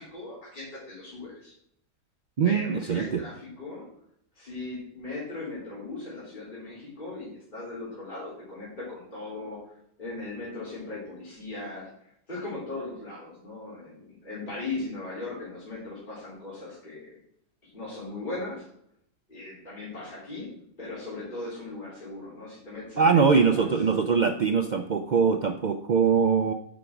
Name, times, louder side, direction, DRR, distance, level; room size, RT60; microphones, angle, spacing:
voice 1, 0.0-1.5 2.4-3.9 4.3-17.2 17.6-18.7 19.3-20.5 20.8-23.7, left 2 dB, 30° left, -8 dB, 3.5 m, -38 dB
voice 2, 2.4-3.2 23.0-26.5, right 5 dB, 85° right, 7 dB, 0.4 m, -22 dB
8.8 x 5.1 x 5.8 m, 0.70 s
omnidirectional pair, 1.5 m